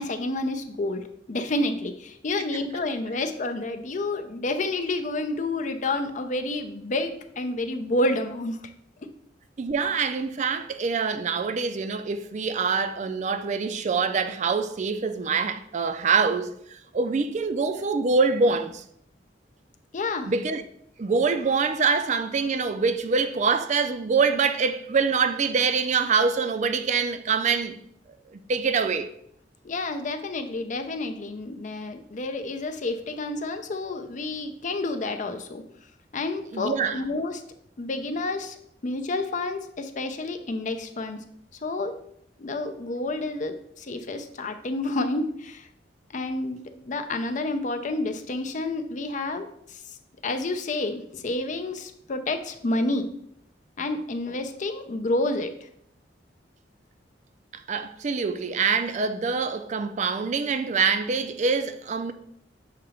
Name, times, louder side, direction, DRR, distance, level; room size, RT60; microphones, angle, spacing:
voice 1, 0.0-8.6 19.9-20.3 29.6-35.6 36.1-37.4 37.8-38.6 38.8-41.2 41.6-42.0 42.4-45.7 46.1-49.9 50.2-53.1 53.8-55.7, left 2 dB, 45° left, 0.5 m, -29 dB
voice 2, 9.6-18.8 20.3-20.6 21.0-27.8 28.3-29.1 36.5-37.0 57.7-62.1, right 5 dB, 40° right, 0.4 m, -25 dB
6.6 x 2.9 x 4.9 m
head